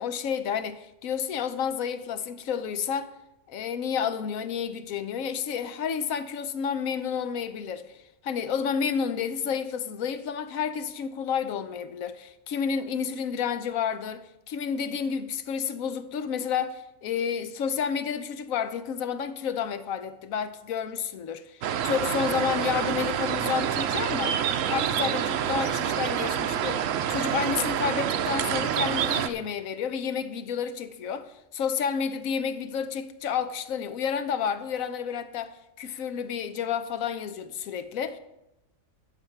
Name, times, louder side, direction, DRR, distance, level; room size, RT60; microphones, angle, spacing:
voice 1, 0.0-3.1 3.5-8.0 8.2-24.4 24.7-38.2, left 7 dB, 85° left, 1.1 m, -30 dB
sound 1, 21.6-29.3, right 9 dB, 75° right, 1.0 m, -27 dB
10.5 x 6.9 x 5.8 m
omnidirectional pair, 1.4 m